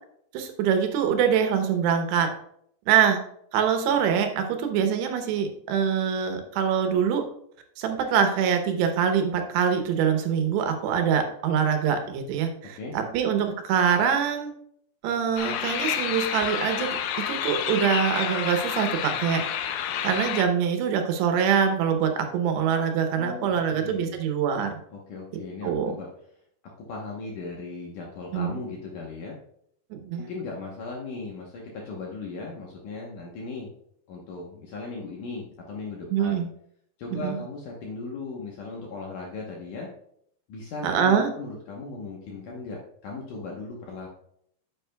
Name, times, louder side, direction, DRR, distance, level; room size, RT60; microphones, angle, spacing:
voice 1, 0.3-2.3 2.9-3.2 3.5-7.2 7.8-14.5 15.0-17.0 17.3-19.4 20.0-24.8 25.6-25.9 28.3-28.6 29.9-30.2 36.1-36.5 37.1-37.4 40.8-41.3, right 7 dB, 80° right, 6 dB, 3.0 m, -24 dB
sound 1, 15.4-20.5, left 9 dB, 85° left, 1.9 m, -29 dB
voice 2, 23.2-24.2 24.9-26.1 26.9-29.4 30.2-33.7 34.1-36.4 37.0-39.9 40.5-44.1, left 3 dB, 70° left, -2 dB, 2.0 m, -37 dB
9.1 x 8.3 x 2.3 m, 0.69 s
omnidirectional pair, 4.9 m